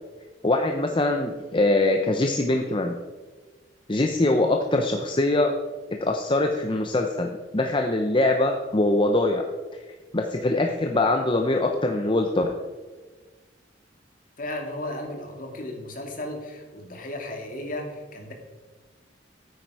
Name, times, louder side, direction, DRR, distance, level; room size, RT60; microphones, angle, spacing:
voice 1, 0.4-3.0 3.9-5.5 6.0-9.4 10.1-12.5, left 2 dB, 25° left, 3 dB, 0.7 m, -23 dB
voice 2, 14.4-18.3, left 1 dB, 45° left, 3 dB, 2.2 m, -35 dB
13.0 x 9.4 x 4.8 m, 1.4 s
head